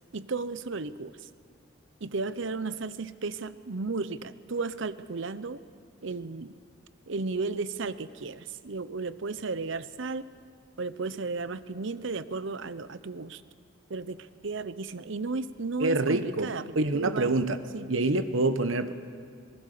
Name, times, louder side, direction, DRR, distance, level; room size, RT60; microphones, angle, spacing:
voice 1, 0.1-1.1 2.0-5.6 6.0-6.5 7.1-10.2 10.8-13.4 13.9-17.4 17.7-17.9, right 3 dB, 70° right, 15 dB, 0.8 m, -34 dB
voice 2, 15.8-16.5 16.7-17.6 17.9-18.9, right 2 dB, 85° right, 10 dB, 1.1 m, -26 dB
26.0 x 19.5 x 6.8 m, 2.3 s
head